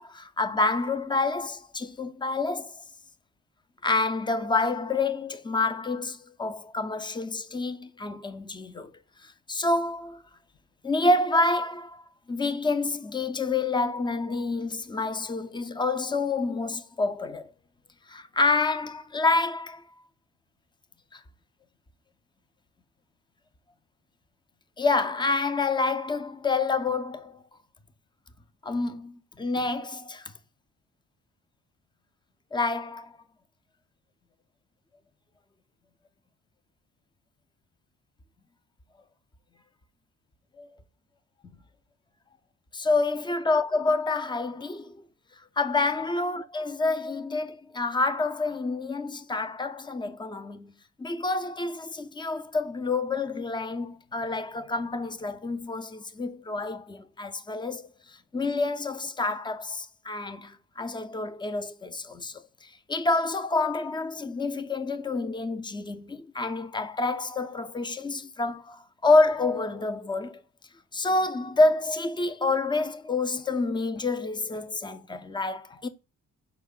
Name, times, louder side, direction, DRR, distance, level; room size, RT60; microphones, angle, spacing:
voice 1, 0.0-2.8 3.8-8.9 9.2-10.2 10.8-17.5 18.1-19.8 21.1-21.2 24.8-27.4 28.6-30.3 32.5-33.2 40.6-40.7 42.7-45.0 45.6-50.7 51.0-70.4 70.9-75.9, left 3 dB, 10° left, 0.4 m, -28 dB
4.6 x 2.4 x 3.6 m
hypercardioid pair, 50°, 44 cm